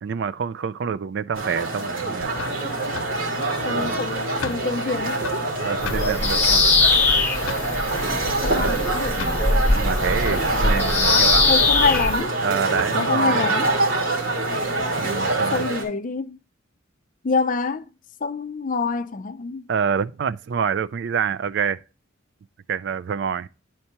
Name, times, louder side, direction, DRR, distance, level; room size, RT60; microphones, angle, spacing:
voice 1, 0.0-2.3 3.7-3.9 5.5-6.7 8.5-8.7 9.7-11.5 12.4-13.4 15.0-15.7 19.7-21.8 22.7-23.5, right 6 dB, 60° right, 0.3 m, -27 dB
sound 1, 1.3-15.8, right 3 dB, 90° right, 2.5 m, -25 dB
sound 2, 2.2-15.7, left 5 dB, 85° left, 0.6 m, -36 dB
voice 2, 3.6-5.2 8.4-9.5 10.5-10.8 11.5-12.3 12.9-13.7 15.5-16.4 17.2-17.8 18.2-19.7, left 4 dB, 40° left, 0.4 m, -26 dB
Bird vocalization bird call bird song, 5.8-12.2, left 3 dB, 10° left, 1.0 m, -21 dB
10.5 x 4.4 x 2.8 m
head